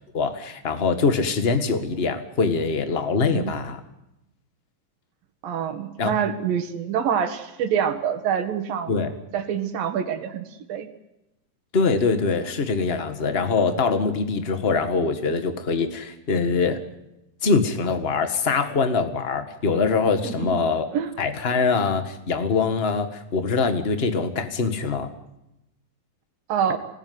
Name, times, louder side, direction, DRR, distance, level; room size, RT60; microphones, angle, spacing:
voice 1, 0.1-3.8 6.0-6.1 8.9-9.1 11.7-16.8 17.4-20.9 21.2-25.1, left 4 dB, 30° left, 8 dB, 1.1 m, -23 dB
voice 2, 5.4-8.9 9.3-10.9 20.2-20.6 20.9-21.1 26.5-26.8, right 8 dB, 85° right, 7 dB, 3.6 m, -26 dB
26.0 x 19.5 x 9.6 m, 0.92 s
omnidirectional pair, 4.0 m